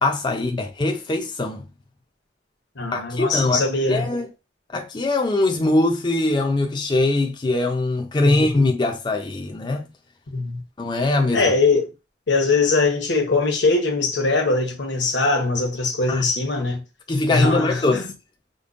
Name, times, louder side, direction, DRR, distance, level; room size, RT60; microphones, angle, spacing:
voice 1, 0.0-1.6 2.9-3.6 3.9-4.3 4.7-9.9 10.8-11.4 16.1-16.2 17.1-18.0, left 2 dB, 25° left, 0.4 m, -22 dB
voice 2, 2.8-4.1 8.2-8.5 10.3-10.6 11.3-11.9 12.3-16.8 17.3-18.0, left 3 dB, 75° left, 1.0 m, -21 dB
5.1 x 2.2 x 2.5 m
head